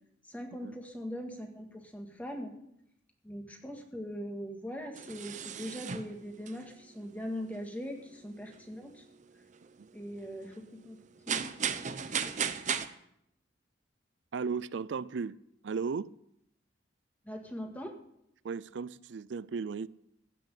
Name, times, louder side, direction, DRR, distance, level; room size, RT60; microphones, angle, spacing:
voice 1, 0.3-2.5 3.2-9.0 9.9-11.0 11.3-12.1 17.2-17.9, equal, 10° left, 1.9 m, -41 dB
sound 1, 4.9-12.9, right 7 dB, 40° right, 0.7 m, -37 dB
voice 2, 14.3-15.4 15.6-16.1 18.4-19.9, right 5 dB, 70° right, 0.4 m, -35 dB
15.5 x 6.2 x 8.5 m
head